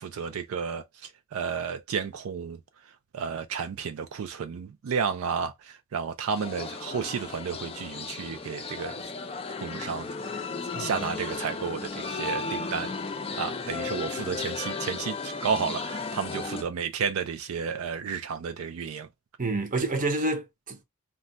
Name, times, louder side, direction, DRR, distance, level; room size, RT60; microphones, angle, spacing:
voice 1, 0.0-2.6 3.1-9.1 9.6-10.4 10.8-12.9 13.4-19.1, right 6 dB, 80° right, 0.4 m, -32 dB
sound 1, 6.3-16.6, left 4 dB, 25° left, 0.4 m, -35 dB
voice 2, 19.4-20.8, right 2 dB, 40° right, 0.7 m, -29 dB
2.2 x 2.2 x 3.8 m
head